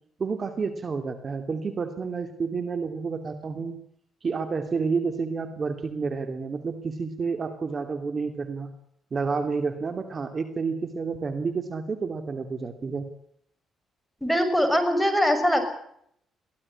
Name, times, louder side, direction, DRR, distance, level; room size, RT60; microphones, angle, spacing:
voice 1, 0.2-3.8 4.2-8.7 9.1-13.1, right 5 dB, 40° right, 8 dB, 2.7 m, -30 dB
voice 2, 14.2-15.7, equal, ahead, 7 dB, 6.4 m, -22 dB
23.0 x 16.0 x 9.9 m, 0.70 s
cardioid pair, 90°, 0 cm